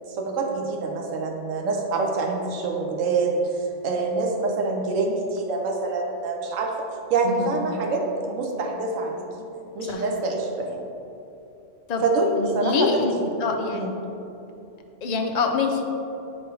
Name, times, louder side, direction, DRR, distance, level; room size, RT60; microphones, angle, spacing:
voice 1, 0.1-3.4 3.8-6.7 7.1-9.5 9.8-10.8 12.0-12.9 13.2-13.3 13.7-13.9, right 3 dB, 90° right, 1 dB, 1.1 m, -26 dB
voice 2, 7.2-7.6 9.9-10.0 11.9-12.0 12.4-13.1 13.4-13.8 15.0-15.8, left 4 dB, 50° left, 3 dB, 0.5 m, -25 dB
8.2 x 3.2 x 4.6 m, 2.8 s
omnidirectional pair, 1.3 m